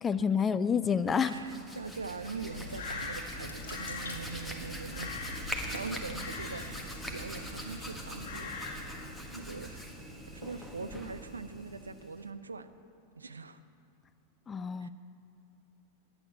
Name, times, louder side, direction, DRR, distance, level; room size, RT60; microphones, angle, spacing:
voice 1, 0.0-1.4 14.5-14.9, left 6 dB, 20° left, 14 dB, 0.4 m, -28 dB
Hands, 0.9-12.3, equal, 5° left, 1.4 m, -43 dB
voice 2, 1.1-5.2 5.7-8.8 9.3-9.9 10.3-12.7 13.1-13.6 14.8-14.9, right 4 dB, 75° right, 10 dB, 0.6 m, -42 dB
Crow, 2.3-9.1, left 3 dB, 50° left, 1.9 m, -43 dB
sound 1, 3.3-8.7, left 3 dB, 65° left, 1.6 m, -52 dB
10.5 x 9.1 x 7.7 m, 2.4 s
figure-of-eight pair, 90°, 0 cm